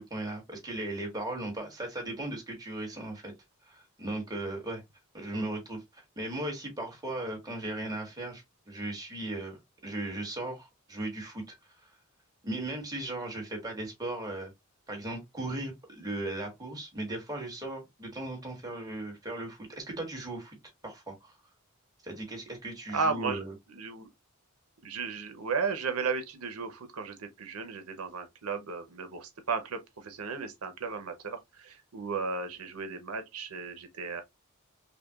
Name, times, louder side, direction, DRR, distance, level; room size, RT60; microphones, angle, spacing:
voice 1, 0.0-3.3 3.7-4.8 5.1-11.9 12.4-14.5 14.9-20.6 20.8-21.4 22.0-23.5, right 1 dB, 20° right, 1.5 m, -37 dB
voice 2, 22.9-23.4 23.7-24.1 24.8-34.2, right 5 dB, 90° right, 0.8 m, -34 dB
5.7 x 2.2 x 2.3 m
head